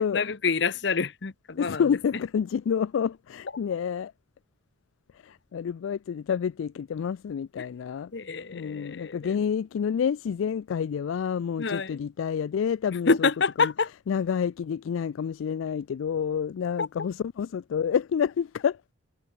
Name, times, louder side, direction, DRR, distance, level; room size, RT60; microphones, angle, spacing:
voice 1, 0.1-1.8 7.6-7.7 8.1-9.4 11.6-12.0 13.1-13.9 16.8-16.9, left 4 dB, 60° left, 0.8 m, -27 dB
voice 2, 1.6-4.1 5.1-8.1 8.5-13.3 13.6-13.7 14.1-18.8, left 7 dB, 75° left, 0.3 m, -28 dB
head